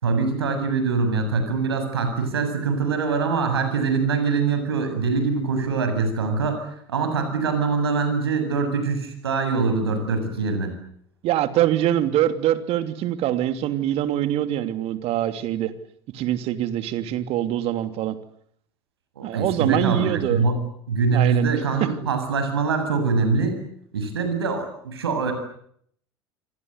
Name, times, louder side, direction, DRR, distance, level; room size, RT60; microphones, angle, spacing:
voice 1, 0.0-6.6 6.9-10.8 19.2-20.6 20.9-23.6 23.9-25.3, right 4 dB, 80° right, 7 dB, 7.7 m, -23 dB
voice 2, 11.2-15.7 16.1-18.2 19.2-20.5 21.1-21.9, right 12 dB, 50° right, 10 dB, 3.0 m, -24 dB
28.5 x 25.0 x 8.3 m, 0.68 s
figure-of-eight pair, 70°, 13 cm